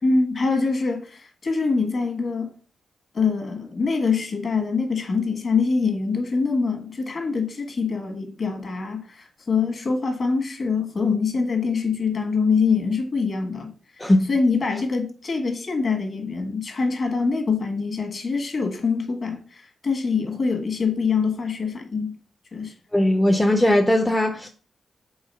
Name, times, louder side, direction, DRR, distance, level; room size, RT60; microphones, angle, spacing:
voice 1, 0.0-2.5 3.1-22.2 22.5-22.7, left 4 dB, 45° left, 1.5 m, -24 dB
voice 2, 14.0-14.3 22.9-24.5, left 1 dB, 5° left, 0.5 m, -19 dB
4.7 x 4.0 x 5.5 m
wide cardioid pair, 150°, 0 cm